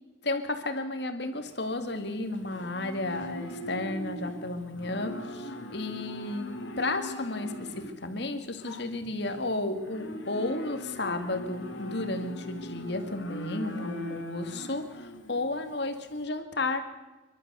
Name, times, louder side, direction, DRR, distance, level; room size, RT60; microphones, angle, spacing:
voice 1, 0.2-16.8, left 2 dB, 60° left, 8 dB, 2.3 m, -33 dB
Livestock farm animals working animals, 1.4-16.2, left 1 dB, 75° left, 2.5 m, -41 dB
30.0 x 12.5 x 6.9 m, 1.2 s
head